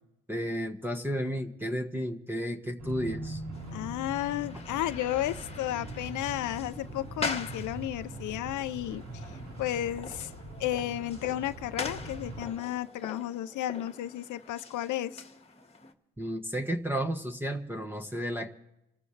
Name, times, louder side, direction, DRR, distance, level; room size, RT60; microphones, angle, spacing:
voice 1, 0.3-3.4 16.2-18.5, equal, 5° right, 5 dB, 1.3 m, -32 dB
sound 1, 2.8-12.5, right 2 dB, 90° right, 4.3 m, -42 dB
sound 2, 3.5-15.9, left 3 dB, 20° left, 1.7 m, -43 dB
voice 2, 3.7-9.0 9.6-10.3 10.6-15.2, left 13 dB, 75° left, 12 dB, 0.6 m, -33 dB
28.0 x 14.0 x 3.3 m, 0.89 s
cardioid pair, 90°, 30 cm